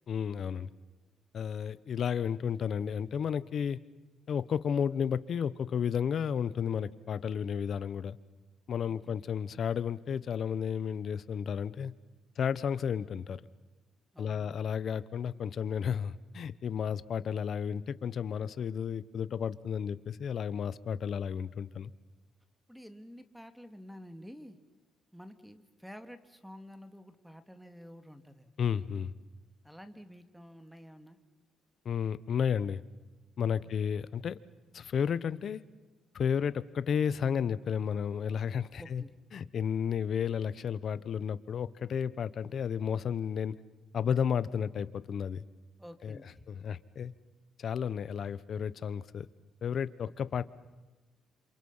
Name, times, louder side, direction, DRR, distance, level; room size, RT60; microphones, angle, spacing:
voice 1, 0.1-0.7 1.3-3.8 4.3-8.2 8.7-11.9 12.4-13.4 14.2-21.9 28.6-29.1 31.8-32.8 33.4-34.4 34.7-35.6 36.1-39.0 39.3-43.6 43.9-45.4 46.0-46.2 46.5-47.1 47.6-49.3 49.6-50.4, left 7 dB, 60° left, 16 dB, 1.1 m, -32 dB
voice 2, 14.1-14.5 22.7-24.6 25.1-28.5 29.6-31.2 33.6-33.7 38.8-39.1 45.8-46.5 50.0-50.1, equal, ahead, 9 dB, 2.3 m, -50 dB
28.5 x 27.0 x 5.7 m, 1.2 s
cardioid pair, 90°, 0 cm